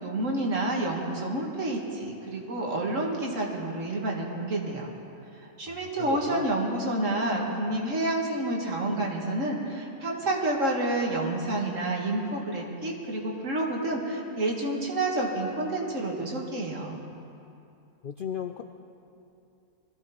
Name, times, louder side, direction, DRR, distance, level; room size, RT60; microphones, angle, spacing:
voice 1, 0.0-4.9 5.4-17.0, right 2 dB, 60° right, -1 dB, 2.3 m, -29 dB
voice 2, 5.7-6.5 18.0-18.6, left 8 dB, 65° left, 7 dB, 0.5 m, -36 dB
21.5 x 14.5 x 4.2 m, 2.6 s
omnidirectional pair, 1.5 m